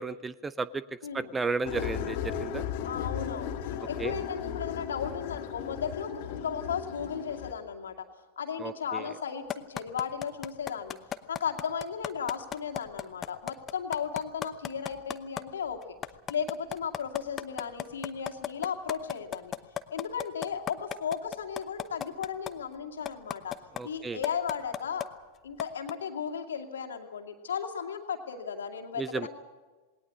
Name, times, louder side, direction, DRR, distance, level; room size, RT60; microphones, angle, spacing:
voice 1, 0.0-0.8 1.1-2.6 4.0-4.1 8.6-9.0 23.7-24.2 29.0-29.3, right 4 dB, 15° right, 18 dB, 0.7 m, -33 dB
voice 2, 1.0-1.3 2.8-3.5 3.9-8.0 8.4-11.0 11.3-16.0 16.3-19.5 19.9-23.6 23.8-25.1 25.4-29.3, left 7 dB, 65° left, 5 dB, 2.4 m, -35 dB
sound 1, 1.7-7.5, left 8 dB, 50° left, 1.8 m, -36 dB
sound 2, 9.5-15.4 15.8-22.5 23.1-23.8 24.2-25.1 25.6-25.9, left 9 dB, 25° left, 0.9 m, -34 dB
20.0 x 18.5 x 8.4 m, 1.3 s
figure-of-eight pair, 90°, 0 cm